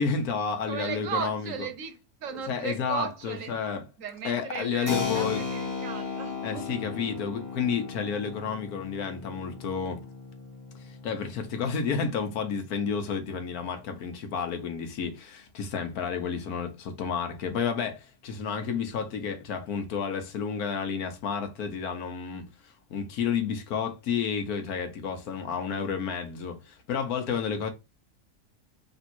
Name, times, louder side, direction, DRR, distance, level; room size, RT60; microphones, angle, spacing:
voice 1, 0.0-1.5 2.5-3.8 4.2-5.4 6.4-10.0 10.8-27.7, left 6 dB, 80° left, 1.4 m, -31 dB
voice 2, 0.7-3.5 4.0-6.8, right 7 dB, 65° right, 1.0 m, -36 dB
Keyboard (musical), 4.9-13.2, left 5 dB, 15° left, 0.7 m, -36 dB
3.5 x 2.7 x 4.3 m
omnidirectional pair, 1.6 m